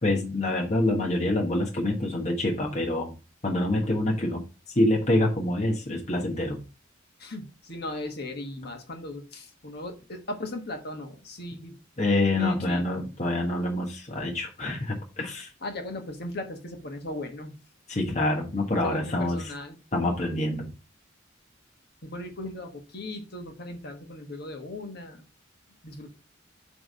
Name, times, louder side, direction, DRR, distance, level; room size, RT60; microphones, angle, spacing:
voice 1, 0.0-3.1 3.4-4.4 4.7-6.6 12.0-15.5 17.9-19.4 19.9-20.7, left 1 dB, 35° left, 0 dB, 1.2 m, -26 dB
voice 2, 7.2-11.8 12.3-12.9 15.6-17.5 18.8-19.8 22.0-25.2 25.8-26.1, left 1 dB, 55° left, 4 dB, 1.4 m, -37 dB
7.8 x 3.4 x 5.3 m, 0.31 s
head